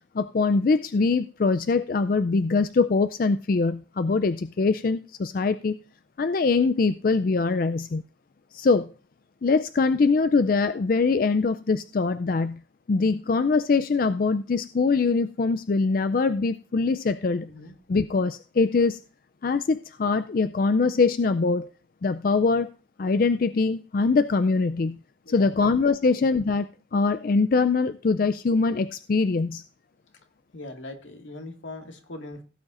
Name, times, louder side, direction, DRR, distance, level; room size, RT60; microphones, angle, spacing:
voice 1, 0.1-5.8 6.2-8.0 8.5-8.9 9.4-12.6 12.9-17.5 17.9-19.0 19.4-21.7 22.0-22.7 23.0-25.0 25.3-29.6, left 4 dB, 50° left, 12 dB, 0.4 m, -23 dB
voice 2, 25.2-25.7 26.1-26.3 30.5-32.4, left 2 dB, 85° left, 4 dB, 1.9 m, -40 dB
16.5 x 8.8 x 2.5 m, 0.35 s
head